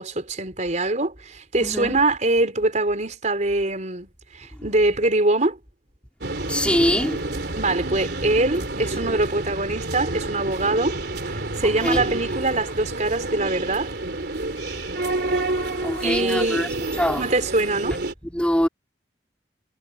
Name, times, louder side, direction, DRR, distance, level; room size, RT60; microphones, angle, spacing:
voice 1, 0.0-4.1 4.3-5.6 7.6-11.0 11.6-13.9 16.0-16.6 17.1-18.0, right 2 dB, 45° right, 4.3 m, -23 dB
voice 2, 1.6-2.0 6.5-7.3 11.6-12.1 15.8-16.7 17.0-17.3 18.2-18.7, equal, 5° left, 4.4 m, -23 dB
sound 1, 6.2-18.1, right 2 dB, 65° right, 3.9 m, -29 dB
head